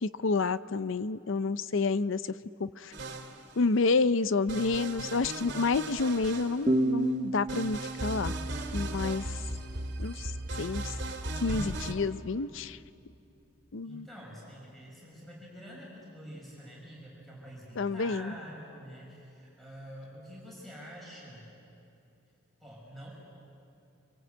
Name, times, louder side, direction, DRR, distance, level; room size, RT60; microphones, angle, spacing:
voice 1, 0.0-2.3 2.6-2.9 3.6-8.3 8.7-9.4 10.0-10.3 10.6-10.9 11.4-12.8 13.7-14.1 17.8-18.3, left 4 dB, 65° left, 14 dB, 0.6 m, -29 dB
sound 1, 2.9-3.8 4.5-7.0 7.5-11.9, right 2 dB, 55° right, 2.4 m, -37 dB
sound 2, 6.7-10.1, right 2 dB, 25° right, 0.8 m, -32 dB
voice 2, 13.8-21.5 22.6-23.1, equal, ahead, -5 dB, 5.9 m, -47 dB
27.0 x 26.5 x 8.1 m, 2.7 s
head